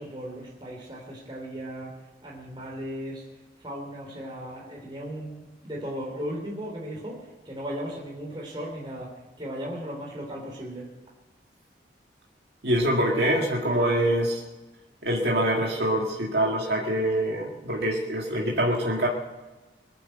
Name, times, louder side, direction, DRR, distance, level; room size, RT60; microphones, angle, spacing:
voice 1, 0.0-3.3 3.6-10.9, equal, 25° right, -3 dB, 3.5 m, -36 dB
voice 2, 12.6-14.4 15.0-19.1, right 1 dB, 65° right, -2 dB, 1.9 m, -25 dB
21.5 x 8.3 x 7.8 m, 1.1 s
head